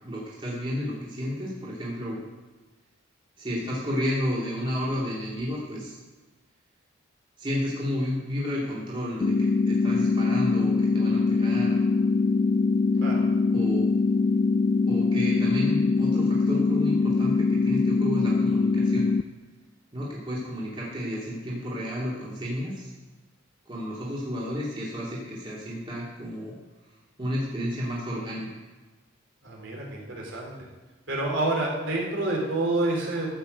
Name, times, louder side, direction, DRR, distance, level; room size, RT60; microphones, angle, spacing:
voice 1, 0.0-2.2 3.4-6.0 7.4-11.8 13.5-13.9 14.9-19.1 19.9-22.9 23.7-26.5 27.2-28.5, equal, 25° right, -6 dB, 2.6 m, -31 dB
sound 1, 9.2-19.2, left 4 dB, 35° left, 0.3 m, -23 dB
voice 2, 29.4-30.5 31.1-33.3, right 2 dB, 60° right, -2 dB, 3.8 m, -28 dB
14.0 x 6.1 x 8.0 m, 1.2 s
head